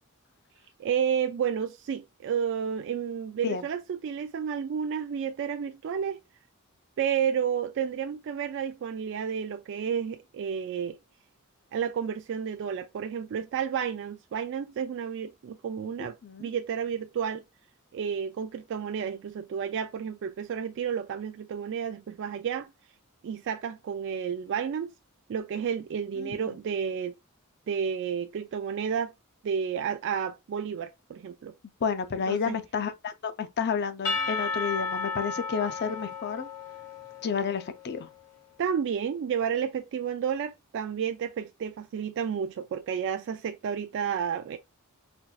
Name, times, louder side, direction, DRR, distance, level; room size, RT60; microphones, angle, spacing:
voice 1, 0.8-6.2 7.0-11.0 11.7-16.1 16.4-17.4 17.9-22.7 23.2-24.9 25.3-27.1 27.7-29.1 29.4-31.5 32.3-32.6 38.6-44.6, right 7 dB, 55° right, 0.3 m, -31 dB
voice 2, 26.2-26.5 31.8-36.5 37.2-38.1, left 6 dB, 50° left, 0.5 m, -31 dB
Percussion / Church bell, 34.0-37.9, left 4 dB, 80° left, 1.0 m, -33 dB
4.3 x 2.5 x 2.3 m
head